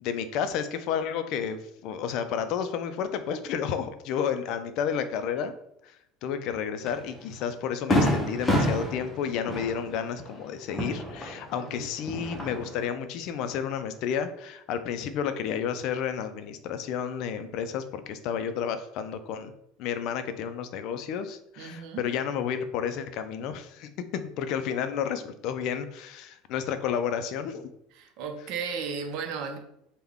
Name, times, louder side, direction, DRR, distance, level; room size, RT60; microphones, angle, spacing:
voice 1, 0.0-5.6 5.8-6.0 6.2-19.5 19.8-27.7, left 8 dB, 55° left, 10 dB, 0.3 m, -31 dB
Fireworks, 6.9-7.0 7.4-7.5 7.9-11.7 12.0-12.8, equal, 10° left, 0.6 m, -28 dB
voice 2, 11.5-11.9 21.6-22.1 27.9-29.6, right 5 dB, 60° right, 5 dB, 0.6 m, -35 dB
3.4 x 2.2 x 3.5 m, 0.77 s
supercardioid pair, 130°, 0 cm